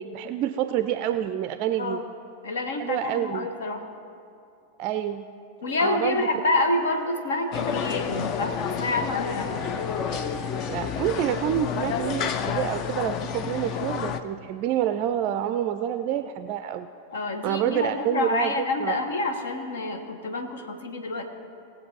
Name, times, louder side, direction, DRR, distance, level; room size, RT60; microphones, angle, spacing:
voice 1, 0.0-2.0 2.8-3.5 4.8-5.3 5.8-6.3 10.7-16.9 17.4-18.5 18.8-19.0, right 11 dB, 40° right, 11 dB, 0.4 m, -27 dB
voice 2, 2.4-3.9 5.6-9.5 17.1-21.3, left 2 dB, 65° left, 6 dB, 1.2 m, -28 dB
sound 1, 5.8-13.0, right 3 dB, 5° right, 1.0 m, -45 dB
sound 2, 7.5-14.2, left 7 dB, 35° left, 0.6 m, -30 dB
19.0 x 7.6 x 4.3 m, 2.6 s
figure-of-eight pair, 90°, 0 cm